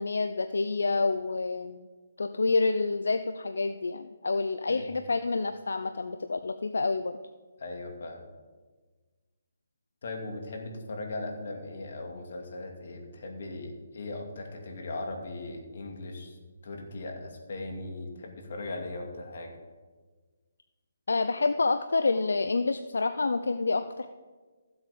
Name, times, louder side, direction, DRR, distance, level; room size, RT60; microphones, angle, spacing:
voice 1, 0.0-1.9 2.2-7.1 21.1-24.1, left 3 dB, 85° left, 10 dB, 0.5 m, -28 dB
voice 2, 7.6-8.2 10.0-16.4 16.6-19.5, left 2 dB, 60° left, 2 dB, 2.5 m, -38 dB
14.5 x 7.9 x 5.2 m, 1.4 s
hypercardioid pair, 155°, 0 cm